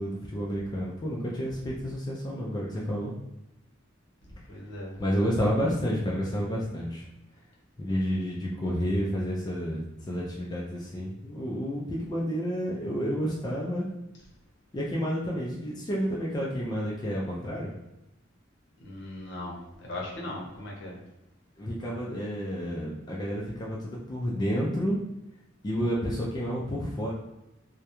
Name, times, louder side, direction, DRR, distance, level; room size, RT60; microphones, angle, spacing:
voice 1, 0.0-3.1 5.0-7.1 7.8-13.9 14.7-17.7 21.6-25.0 25.6-27.1, equal, 20° left, -5 dB, 0.3 m, -30 dB
voice 2, 4.5-4.9 18.8-21.0, left 1 dB, 65° left, -4 dB, 0.8 m, -38 dB
2.3 x 2.0 x 2.9 m, 0.94 s
head